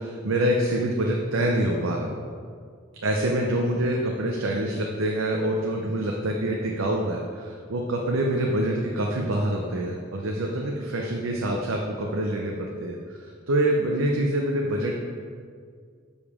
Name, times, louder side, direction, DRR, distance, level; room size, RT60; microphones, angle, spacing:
voice 1, 0.0-2.1 3.0-15.0, right 1 dB, 80° right, 0 dB, 0.7 m, -26 dB
sound 1, 4.5-7.0, right 2 dB, 55° left, 0.6 m, -42 dB
7.1 x 5.4 x 4.9 m, 2.1 s
head